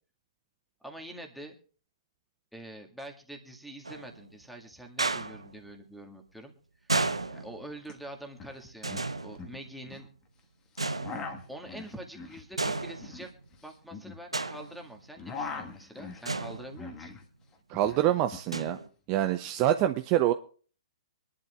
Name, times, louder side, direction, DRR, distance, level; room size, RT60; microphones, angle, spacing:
voice 1, 0.8-1.6 2.5-6.5 6.8-6.9 7.3-10.1 11.5-13.3 13.6-17.1, right 1 dB, ahead, 1 dB, 1.8 m, -45 dB
sound 1, 3.8-4.3 5.0-5.6 6.9-7.9 8.8-9.9 10.8-11.6 12.6-13.4 14.3-15.0 16.3-17.1 18.5-18.9, right 3 dB, 85° right, 0.9 m, -33 dB
sound 2, 7.8-7.9 8.2-8.6 8.9-10.1 10.7-14.7 15.0-17.3 17.5-18.5, left 4 dB, 20° left, 1.5 m, -42 dB
voice 2, 17.7-18.8 19.1-20.3, right 12 dB, 30° right, 10 dB, 0.6 m, -26 dB
24.5 x 11.0 x 2.4 m, 0.41 s
figure-of-eight pair, 120°, 3 cm